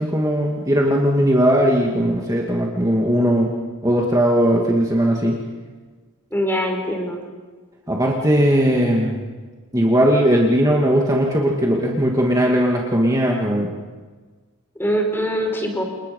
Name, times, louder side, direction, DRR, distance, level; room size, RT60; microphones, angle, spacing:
voice 1, 0.0-3.5 3.8-5.4 7.9-9.2 9.7-13.7, equal, 15° right, -2 dB, 2.5 m, -18 dB
voice 2, 6.3-7.2 14.7-15.8, equal, 10° left, 2 dB, 4.6 m, -23 dB
29.5 x 29.0 x 5.6 m, 1.4 s
head